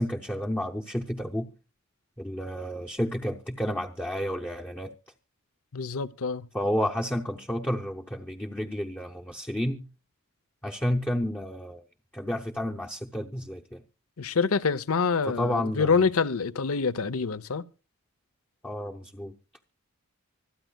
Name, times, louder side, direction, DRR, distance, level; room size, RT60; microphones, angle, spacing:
voice 1, 0.0-1.5 2.2-4.9 6.5-9.9 10.6-11.8 12.1-13.8 15.3-15.9 18.6-19.3, equal, 10° left, 0.7 m, -31 dB
voice 2, 5.7-6.5 14.2-17.6, left 5 dB, 85° left, 0.7 m, -26 dB
25.5 x 9.1 x 2.3 m
head